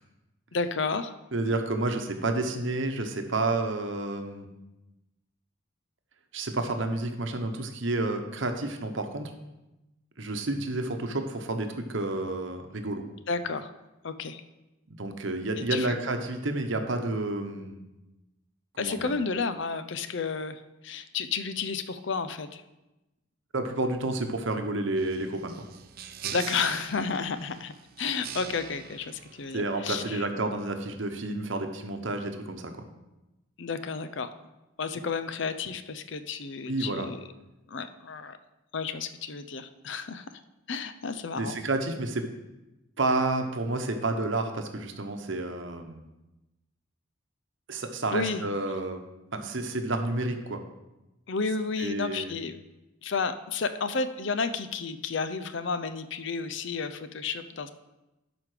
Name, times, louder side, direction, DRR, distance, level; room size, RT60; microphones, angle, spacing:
voice 1, 0.5-1.1 13.3-13.7 14.0-14.4 15.6-15.9 18.8-22.6 26.3-27.7 28.0-30.3 33.6-34.3 34.8-37.2 37.7-38.4 38.7-40.2 40.7-41.6 48.1-48.4 51.3-52.6 53.0-57.7, left 4 dB, 55° left, 11 dB, 0.5 m, -31 dB
voice 2, 1.3-4.5 6.3-9.3 10.2-13.0 15.0-17.8 18.7-19.1 23.5-25.7 29.5-32.7 36.7-37.1 41.4-42.3 43.0-46.0 47.7-49.0 49.3-50.6 51.8-52.4, right 2 dB, 60° right, 5 dB, 1.0 m, -30 dB
sound 1, 25.0-30.0, right 8 dB, 45° right, 0.5 m, -42 dB
12.0 x 5.1 x 4.9 m, 0.99 s
head